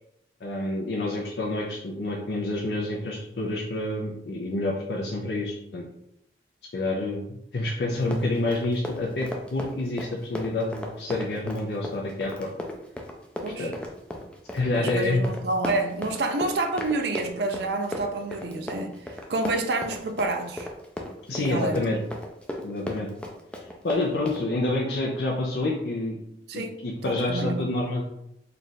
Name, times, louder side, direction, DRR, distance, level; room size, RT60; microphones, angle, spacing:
voice 1, 0.4-5.8 6.7-12.5 13.6-13.7 14.5-15.2 21.3-22.0 22.6-23.1 23.8-26.2 26.5-28.1, left 2 dB, 70° left, 0.5 m, -28 dB
Run, 7.9-24.4, left 1 dB, 5° left, 0.4 m, -36 dB
voice 2, 13.4-13.7 14.8-20.7 21.3-21.8 26.5-26.7 27.0-27.7, right 2 dB, 65° right, 0.4 m, -28 dB
3.3 x 2.4 x 4.0 m
head